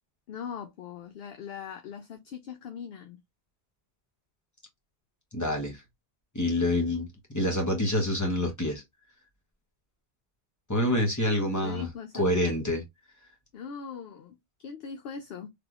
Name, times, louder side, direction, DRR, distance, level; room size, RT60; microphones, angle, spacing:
voice 1, 0.3-3.2 11.2-12.3 13.5-15.5, left 6 dB, 65° left, 0.7 m, -40 dB
voice 2, 5.3-5.8 6.3-7.1 7.3-8.8 10.7-11.9 12.1-12.8, left 1 dB, 15° left, 0.9 m, -27 dB
3.4 x 2.9 x 2.3 m
omnidirectional pair, 1.1 m